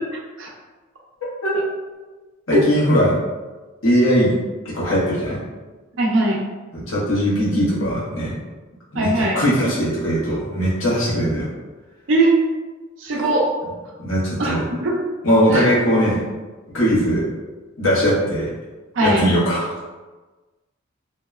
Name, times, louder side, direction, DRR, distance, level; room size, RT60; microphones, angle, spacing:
voice 1, 2.5-3.2 3.8-4.3 4.7-5.4 6.7-8.3 8.9-11.5 14.0-14.6 15.2-16.2 16.7-17.2 17.8-18.5 19.0-19.7, equal, 80° left, -8 dB, 1.0 m, -19 dB
voice 2, 6.0-6.4 8.9-9.4 12.1-12.3 13.0-13.5 14.4-14.5 14.9-15.1 15.5-15.7 18.9-19.3, right 2 dB, 65° right, -2 dB, 0.5 m, -19 dB
2.7 x 2.0 x 2.3 m, 1.2 s
head